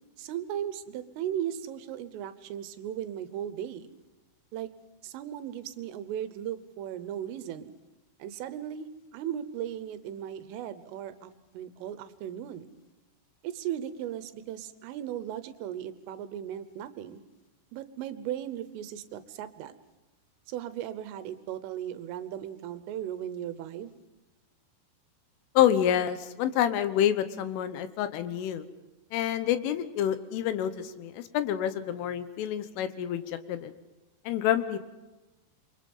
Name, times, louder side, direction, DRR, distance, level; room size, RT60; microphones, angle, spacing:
voice 1, 0.2-3.9 4.5-4.7 5.0-7.7 8.2-12.7 13.4-17.2 17.7-19.7 20.5-23.9, right 10 dB, 80° right, 12 dB, 3.4 m, -37 dB
voice 2, 25.6-28.7 29.1-33.7 34.3-34.8, left 10 dB, 75° left, 11 dB, 3.5 m, -28 dB
28.0 x 24.0 x 5.5 m, 1.1 s
omnidirectional pair, 5.9 m